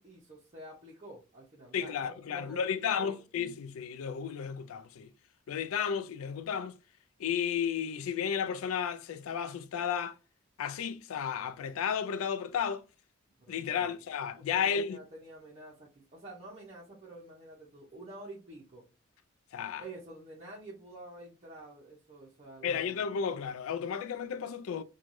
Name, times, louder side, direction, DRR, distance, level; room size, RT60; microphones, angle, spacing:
voice 1, 0.0-3.2 13.4-13.9 14.4-18.9 19.8-23.0, right 2 dB, 30° right, 0.6 m, -49 dB
voice 2, 1.7-5.1 5.5-6.7 7.2-10.2 10.6-12.8 13.5-15.0 19.5-19.8 22.6-24.8, left 7 dB, 80° left, 0.3 m, -33 dB
3.1 x 2.3 x 2.5 m
head